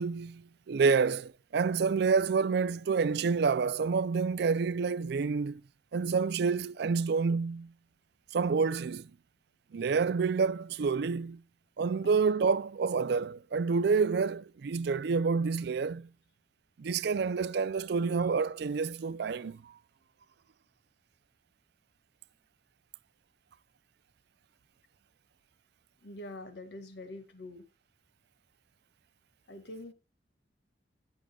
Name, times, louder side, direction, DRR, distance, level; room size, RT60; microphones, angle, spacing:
voice 1, 0.0-5.6 5.9-7.7 8.3-9.1 9.7-11.4 11.8-16.1 16.8-19.7, right 5 dB, 65° right, 0.4 m, -28 dB
voice 2, 26.0-27.6 29.5-29.9, left 1 dB, 70° left, 1.9 m, -44 dB
19.5 x 6.6 x 2.3 m
head